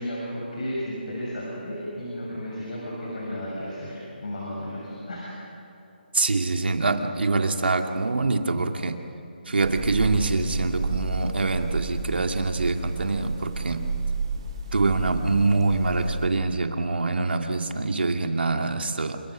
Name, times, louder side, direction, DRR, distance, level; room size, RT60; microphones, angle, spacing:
voice 1, 0.0-5.3, equal, 45° left, -4 dB, 6.9 m, -33 dB
voice 2, 6.1-9.0 9.5-13.9 14.7-19.2, right 3 dB, 80° right, 4 dB, 2.3 m, -25 dB
sound 1, 9.6-16.3, right 4 dB, 30° right, 2.4 m, -31 dB
29.0 x 26.0 x 6.3 m, 2.8 s
hypercardioid pair, 180°, 6 cm